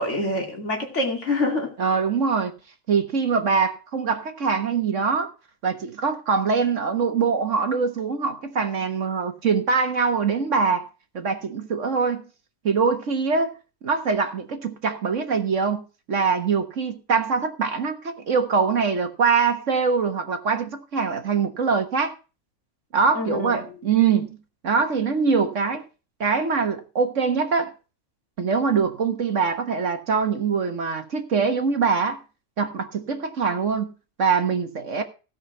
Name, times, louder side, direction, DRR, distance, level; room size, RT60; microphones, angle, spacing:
voice 1, 0.0-1.7 23.1-23.5, left 2 dB, 50° left, 2.9 m, -25 dB
voice 2, 1.8-2.5 2.9-5.3 5.6-10.9 11.1-12.2 12.6-13.6 13.8-15.8 16.1-22.1 22.9-24.3 24.6-25.8 26.2-27.7 28.4-32.2 32.6-33.9 34.2-35.0, right 5 dB, 55° right, 1.6 m, -23 dB
16.0 x 5.7 x 6.0 m
omnidirectional pair, 1.6 m